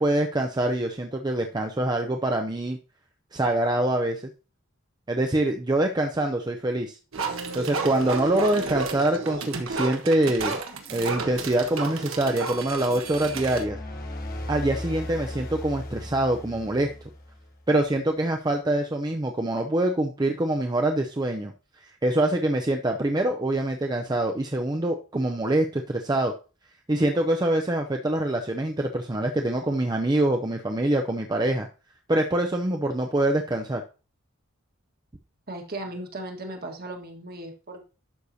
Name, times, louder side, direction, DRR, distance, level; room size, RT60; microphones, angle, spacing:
voice 1, 0.0-2.8 3.3-4.2 5.1-7.0 7.5-10.6 10.9-13.8 14.5-16.9 17.7-21.5 22.0-26.3 26.9-31.7 32.1-33.8, right 1 dB, 20° right, 3 dB, 0.6 m, -25 dB
sound 1, 7.1-13.6, right 4 dB, 75° right, 1.4 m, -32 dB
sound 2, 13.0-17.6, left 1 dB, 45° left, 1.4 m, -37 dB
voice 2, 35.5-37.9, right 1 dB, 45° right, 3 dB, 1.6 m, -37 dB
11.5 x 6.5 x 2.8 m, 0.34 s
head